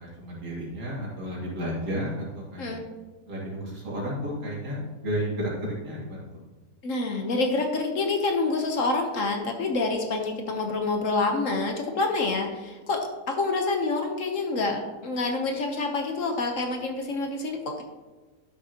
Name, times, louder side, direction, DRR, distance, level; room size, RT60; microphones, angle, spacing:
voice 1, 0.0-2.8 3.3-6.3, equal, 75° right, -5 dB, 3.0 m, -32 dB
voice 2, 6.8-17.8, left 3 dB, 55° left, 4 dB, 1.2 m, -27 dB
12.0 x 6.4 x 2.8 m, 1.3 s
omnidirectional pair, 1.7 m